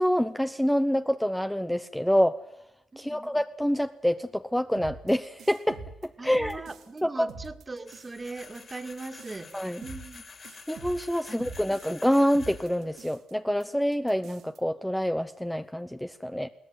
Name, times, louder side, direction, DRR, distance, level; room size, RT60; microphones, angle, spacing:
voice 1, 0.0-2.4 3.0-6.6 7.0-7.3 9.5-9.8 10.7-16.5, equal, 5° left, 10 dB, 0.8 m, -27 dB
voice 2, 2.9-3.4 6.2-9.5 9.8-10.2 11.3-11.4, right 3 dB, 25° right, 8 dB, 2.2 m, -40 dB
sound 1, 4.8-7.0 7.3-8.1 8.4-12.1 12.3-13.3 13.6-13.7 13.9-14.6, right 4 dB, 75° right, 2.8 m, -45 dB
sound 2, 7.9-13.1, left 4 dB, 40° left, 4.4 m, -48 dB
22.0 x 17.5 x 9.4 m, 0.83 s
cardioid pair, 90°, 0 cm